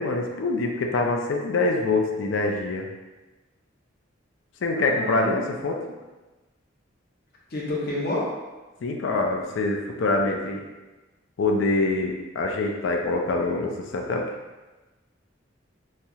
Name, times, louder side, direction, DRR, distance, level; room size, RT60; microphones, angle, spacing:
voice 1, 0.0-2.9 4.6-5.8 8.8-10.6 11.4-14.2, left 2 dB, 75° left, 1 dB, 0.4 m, -25 dB
voice 2, 4.8-5.3 7.5-8.3, left 1 dB, 50° left, -5 dB, 0.7 m, -29 dB
3.1 x 2.7 x 2.3 m, 1.2 s
head